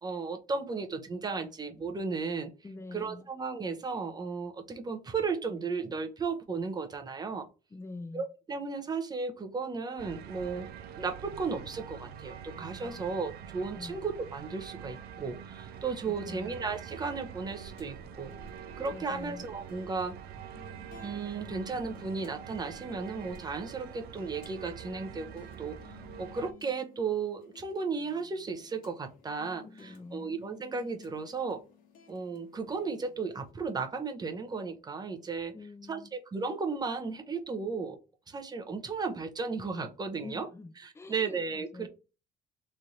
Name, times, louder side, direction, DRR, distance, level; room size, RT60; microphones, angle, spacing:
voice 1, 0.0-2.5 2.9-7.5 8.1-10.7 11.0-18.3 18.8-20.2 21.0-31.6 32.1-35.5 35.9-38.0 38.3-40.5 40.8-41.9, right 4 dB, 25° right, 0.6 m, -35 dB
voice 2, 2.6-3.2 7.7-8.2 12.8-13.1 13.7-13.9 16.1-16.5 18.9-19.5 29.6-30.3 35.5-36.1 40.2-41.9, left 3 dB, 15° left, 0.5 m, -45 dB
sound 1, 10.0-26.5, right 8 dB, 65° right, 0.4 m, -45 dB
sound 2, 15.7-33.5, left 7 dB, 55° left, 1.1 m, -56 dB
3.1 x 2.5 x 4.1 m
cardioid pair, 110°, 17 cm